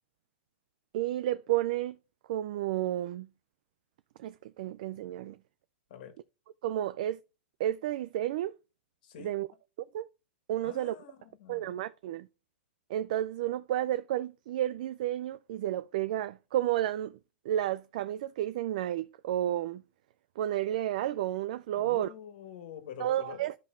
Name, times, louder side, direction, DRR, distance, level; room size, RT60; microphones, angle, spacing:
voice 1, 0.9-2.0 2.3-3.3 4.2-5.4 6.6-7.2 7.6-8.5 9.2-9.5 9.9-10.1 10.5-11.0 11.5-12.3 12.9-17.2 17.5-19.8 20.4-22.1 23.0-23.5, right 13 dB, 40° right, 0.4 m, -31 dB
voice 2, 9.0-9.3 10.6-11.8 21.7-23.5, left 8 dB, 45° left, 1.7 m, -46 dB
13.0 x 5.2 x 2.5 m
hypercardioid pair, 170°, 7 cm